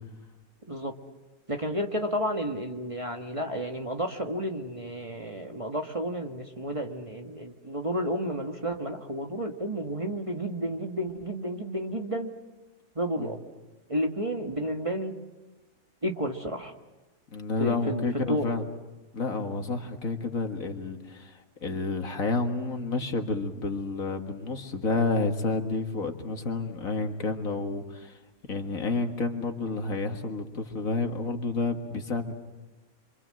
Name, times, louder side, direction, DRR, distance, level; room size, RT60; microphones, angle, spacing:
voice 1, 1.5-12.3 12.9-13.4 13.9-15.1 16.0-16.7 17.6-18.6, equal, 25° right, 3 dB, 1.5 m, -31 dB
voice 2, 17.3-18.6 19.1-28.2 28.5-32.3, left 3 dB, 70° left, 5 dB, 2.3 m, -30 dB
27.5 x 25.0 x 7.7 m, 1.2 s
omnidirectional pair, 1.5 m